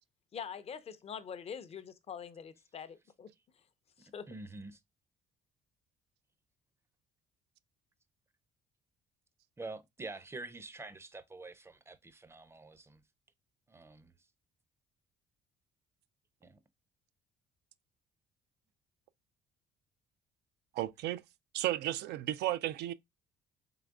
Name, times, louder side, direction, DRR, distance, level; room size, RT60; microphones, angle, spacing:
voice 1, 0.3-3.3 4.0-4.3, left 7 dB, 35° left, 0.6 m, -44 dB
voice 2, 4.3-4.8 9.6-13.0 13.7-14.1 16.4-16.6, right 3 dB, 15° right, 0.5 m, -46 dB
voice 3, 20.7-21.2 21.5-22.9, right 14 dB, 80° right, 0.4 m, -33 dB
3.8 x 3.3 x 3.4 m
cardioid pair, 110°, 17 cm